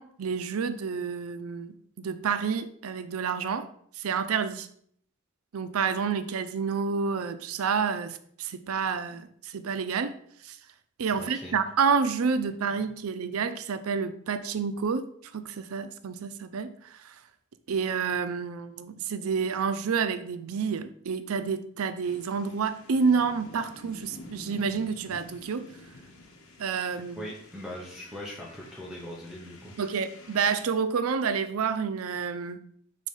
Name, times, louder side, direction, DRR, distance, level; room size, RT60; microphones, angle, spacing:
voice 1, 0.0-3.7 3.9-4.7 5.5-10.1 10.4-10.6 11.0-17.2 17.7-25.7 26.6-27.3 29.8-32.6, right 5 dB, 90° right, 11 dB, 0.5 m, -29 dB
voice 2, 11.2-11.6 12.8-12.9 27.2-29.7, equal, 5° right, -4 dB, 0.9 m, -41 dB
sound 1, 22.0-30.7, left 2 dB, 85° left, 1.2 m, -49 dB
5.0 x 4.1 x 5.4 m, 0.64 s
head